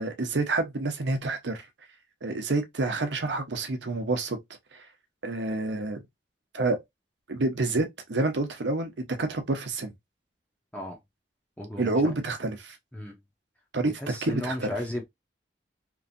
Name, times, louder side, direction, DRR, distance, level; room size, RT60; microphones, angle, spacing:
voice 1, 0.0-1.7 2.2-4.4 4.7-4.8 5.2-6.0 6.5-6.8 7.3-9.9 11.8-12.8 13.7-14.7, right 2 dB, 90° right, 0.8 m, -28 dB
voice 2, 11.6-12.1 12.9-13.2 13.8-15.0, left 1 dB, 10° left, 0.6 m, -34 dB
3.0 x 2.6 x 2.5 m
head